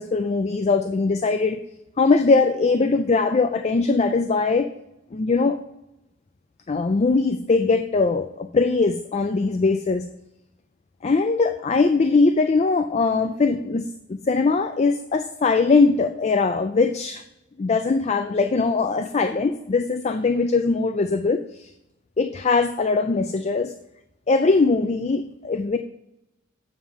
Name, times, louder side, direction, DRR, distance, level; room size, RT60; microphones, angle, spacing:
voice 1, 0.0-1.6 2.0-4.7 5.1-5.6 6.7-10.1 11.0-17.2 17.6-21.7 22.2-23.7 24.3-25.8, left 4 dB, 35° left, 9 dB, 0.4 m, -21 dB
7.3 x 7.2 x 4.8 m, 0.88 s
head